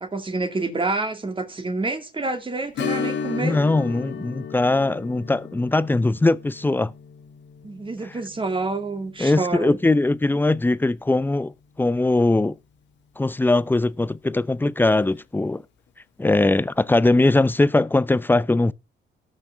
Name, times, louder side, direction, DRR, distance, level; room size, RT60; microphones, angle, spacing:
voice 1, 0.0-3.6 7.6-9.8, right 3 dB, 25° right, 2.2 m, -28 dB
Strum, 2.7-11.9 12.3-12.4 14.9-15.1 15.5-15.6, left 6 dB, 70° left, 2.0 m, -35 dB
voice 2, 3.4-6.9 9.2-11.5 11.8-12.5 13.2-15.6 16.2-18.7, left 2 dB, 10° left, 0.6 m, -20 dB
18.5 x 6.5 x 3.4 m
cardioid pair, 90°, 20 cm